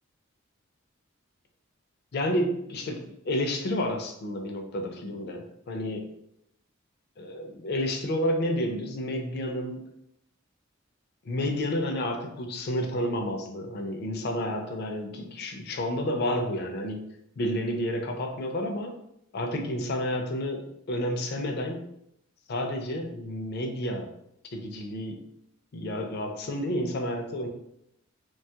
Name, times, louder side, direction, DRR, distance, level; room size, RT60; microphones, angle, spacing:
voice 1, 2.1-6.0 7.2-9.8 11.3-17.1 17.4-19.0 19.3-21.8 22.5-24.1 24.5-25.2 25.7-27.5, left 1 dB, 50° left, 4 dB, 0.4 m, -30 dB
3.0 x 2.2 x 2.7 m, 0.77 s
head